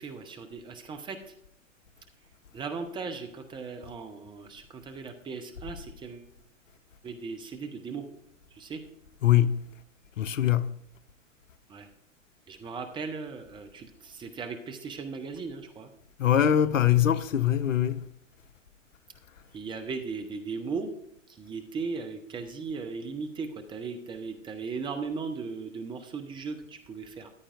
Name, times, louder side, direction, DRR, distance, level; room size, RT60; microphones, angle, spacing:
voice 1, 0.0-1.3 2.5-6.3 7.0-8.1 8.5-8.8 11.7-11.9 12.5-15.9 16.5-16.7 19.5-20.9 21.3-27.3, right 4 dB, 10° right, 0.6 m, -37 dB
voice 2, 9.2-9.6 10.2-10.7 16.2-18.0, left 10 dB, 75° left, 0.6 m, -22 dB
13.5 x 9.9 x 2.5 m
figure-of-eight pair, 105°, 39 cm